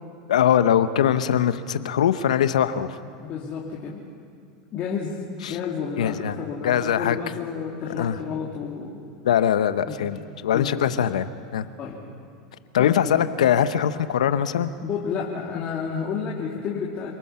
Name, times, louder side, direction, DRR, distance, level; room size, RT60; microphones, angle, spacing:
voice 1, 0.3-3.0 5.4-5.6 6.0-6.4 6.6-7.2 8.0-8.2 9.2-11.7 12.7-14.7, left 9 dB, 85° left, 12 dB, 0.9 m, -22 dB
voice 2, 3.2-4.0 4.7-5.2 5.5-9.0 9.9-10.1 10.5-11.0 11.8-12.0 12.8-13.3 14.8-17.1, left 6 dB, 40° left, -4 dB, 2.8 m, -31 dB
28.0 x 19.5 x 5.7 m, 2.3 s
hypercardioid pair, 105°, 4 cm